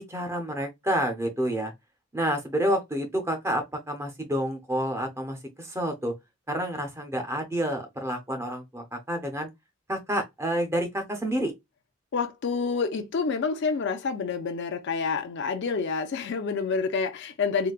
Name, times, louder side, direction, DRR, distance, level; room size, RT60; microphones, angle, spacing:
voice 1, 0.0-1.7 2.1-6.1 6.5-9.5 9.9-11.5, equal, 15° right, 0.6 m, -29 dB
voice 2, 12.1-17.7, left 5 dB, 55° left, 0.4 m, -28 dB
3.8 x 2.2 x 2.3 m
head